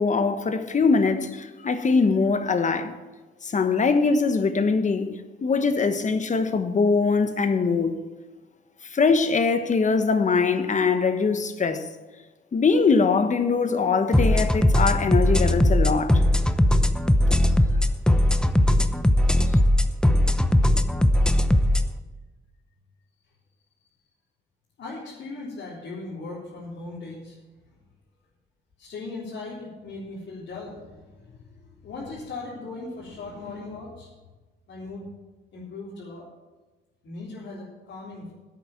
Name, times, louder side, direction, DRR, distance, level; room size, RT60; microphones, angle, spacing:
voice 1, 0.0-2.9 3.4-7.9 8.8-11.9 12.5-16.2, left 4 dB, 40° left, 1.3 m, -22 dB
sound 1, 14.1-21.9, left 1 dB, 5° left, 0.8 m, -19 dB
voice 2, 24.8-27.8 28.8-34.1 34.7-35.1 35.5-36.3 37.0-38.3, left 3 dB, 70° left, 3.8 m, -38 dB
11.0 x 8.3 x 7.2 m
cardioid pair, 90°, 20 cm